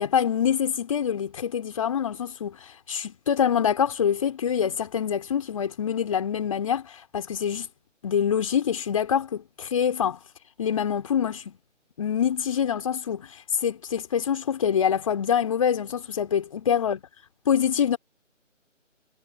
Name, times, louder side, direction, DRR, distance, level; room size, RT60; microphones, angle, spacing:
voice 1, 0.0-7.7 8.0-10.2 10.6-11.6 12.0-13.3 13.6-17.0 17.5-18.0, left 8 dB, 25° left, 4.7 m, -25 dB
figure-of-eight pair, 155°, 38 cm